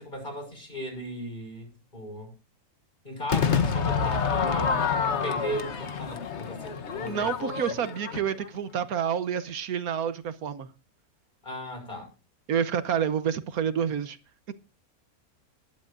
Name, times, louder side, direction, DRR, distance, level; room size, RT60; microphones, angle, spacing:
voice 1, 0.0-2.3 3.0-4.9 5.2-7.8 11.4-12.1, equal, 35° left, 6.2 m, -37 dB
Crowd / Fireworks, 3.3-8.6, left 6 dB, 55° left, 1.3 m, -28 dB
voice 2, 7.1-10.7 12.5-14.2 14.5-14.6, right 8 dB, 80° right, 1.4 m, -28 dB
20.5 x 11.5 x 2.5 m
omnidirectional pair, 1.5 m